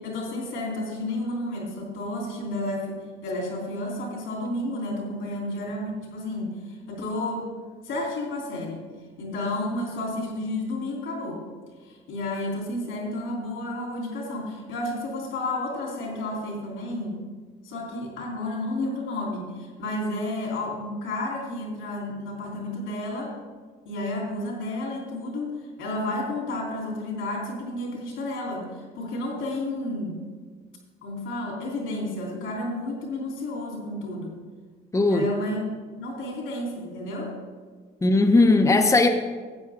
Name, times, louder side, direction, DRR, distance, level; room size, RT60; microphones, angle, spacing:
voice 1, 0.0-7.5 7.8-8.8 9.2-11.4 11.8-17.2 17.6-23.4 23.8-25.5 25.8-30.2 31.0-34.4 35.0-35.6 36.0-37.3, left 1 dB, 90° left, -1 dB, 3.1 m, -31 dB
voice 2, 34.9-35.3 38.0-39.1, left 2 dB, 15° left, 5 dB, 0.7 m, -18 dB
12.0 x 8.5 x 3.5 m, 1.5 s
cardioid pair, 90°, 20 cm